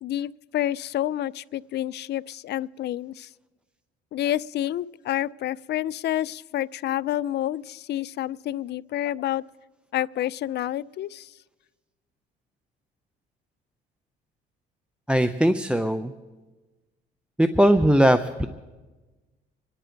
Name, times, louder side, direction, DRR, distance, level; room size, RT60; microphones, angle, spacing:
voice 1, 0.0-3.3 4.1-9.4 9.9-11.3, left 13 dB, 55° left, 21 dB, 0.4 m, -29 dB
voice 2, 15.1-16.1 17.4-18.5, equal, 5° right, 9 dB, 0.6 m, -20 dB
26.5 x 10.5 x 4.6 m, 1.2 s
cardioid pair, 85°, 21 cm